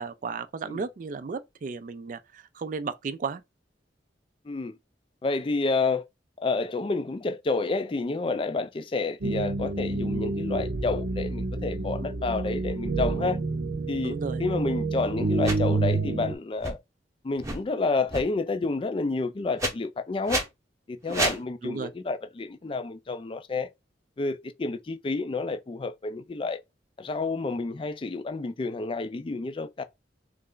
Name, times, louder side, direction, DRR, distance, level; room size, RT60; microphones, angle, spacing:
voice 1, 0.0-3.4 14.0-14.4 21.1-21.4 21.6-21.9, right 4 dB, 45° right, 0.3 m, -34 dB
voice 2, 5.2-6.1 6.4-13.4 13.9-14.1 14.4-16.8 17.2-20.4 20.9-23.7 24.2-26.6 27.0-29.8, left 3 dB, 30° left, 0.3 m, -29 dB
sound 1, 9.2-16.3, right 3 dB, 85° right, 0.7 m, -28 dB
sound 2, 15.4-15.6 16.6-16.7 17.3-17.6 18.1-18.2 19.6-19.7 20.3-20.5 21.1-21.4, right 2 dB, 20° right, 0.8 m, -29 dB
3.2 x 2.4 x 3.7 m
head